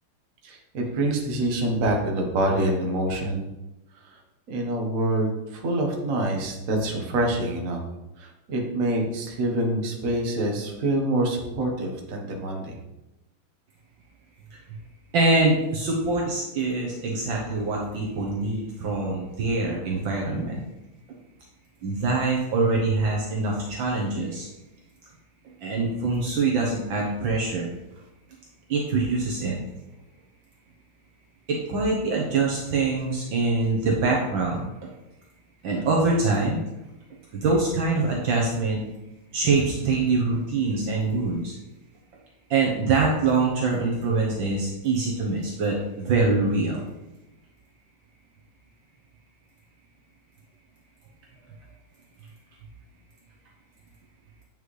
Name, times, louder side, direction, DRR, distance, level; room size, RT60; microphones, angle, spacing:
voice 1, 0.4-3.5 3.9-4.2 4.5-7.8 8.2-12.8, right 1 dB, 45° right, 1 dB, 1.4 m, -26 dB
voice 2, 15.1-20.6 21.8-24.5 25.6-27.7 28.7-29.6 31.5-34.6 35.6-36.6 37.3-38.8 39.3-41.6 42.5-46.8, right 3 dB, 70° right, -2 dB, 1.7 m, -24 dB
8.3 x 5.4 x 3.2 m, 0.96 s
omnidirectional pair, 2.3 m